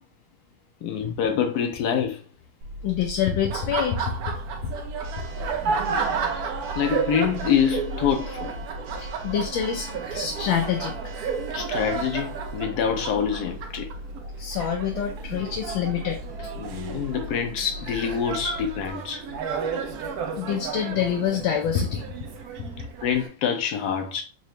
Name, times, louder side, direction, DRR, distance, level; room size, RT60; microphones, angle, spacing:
voice 1, 0.8-2.2 6.7-8.6 11.5-13.9 16.6-19.2 23.0-24.2, left 7 dB, 70° left, 1.0 m, -26 dB
Church bell, 2.6-18.9, equal, 85° right, 1.4 m, -39 dB
voice 2, 2.8-4.1 9.0-11.0 14.4-16.5 20.4-22.2, left 8 dB, 85° left, 1.4 m, -26 dB
Laughter, 3.4-23.3, right 6 dB, 65° right, 1.0 m, -32 dB
4.0 x 2.7 x 3.1 m
omnidirectional pair, 2.1 m